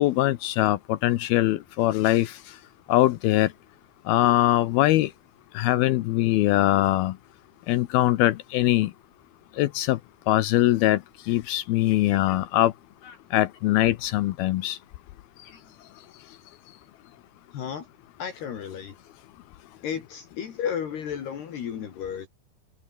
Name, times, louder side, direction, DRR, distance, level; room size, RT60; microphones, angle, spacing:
voice 1, 0.0-2.3 2.9-3.5 4.1-5.1 5.6-7.1 7.7-8.9 9.6-10.0 10.3-11.0 11.3-12.7 13.3-14.8, left 15 dB, 80° left, 2.3 m, -22 dB
voice 2, 12.1-12.4 13.0-13.2 15.4-15.6 17.5-17.9 18.2-18.9 19.8-22.3, left 8 dB, 65° left, 4.6 m, -33 dB
omnidirectional pair, 5.3 m